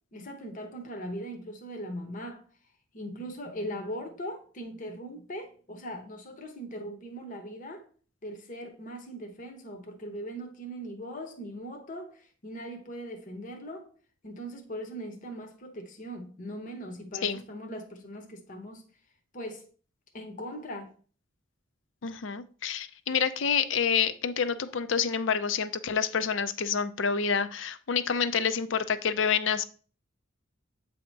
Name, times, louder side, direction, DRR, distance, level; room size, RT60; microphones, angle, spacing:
voice 1, 0.1-2.4 2.9-7.9 8.2-13.9 14.2-18.8 19.3-19.7 20.1-20.9, equal, 40° left, 0.8 m, -40 dB
voice 2, 22.0-29.7, left 6 dB, 65° left, 0.5 m, -28 dB
8.3 x 2.8 x 4.5 m
head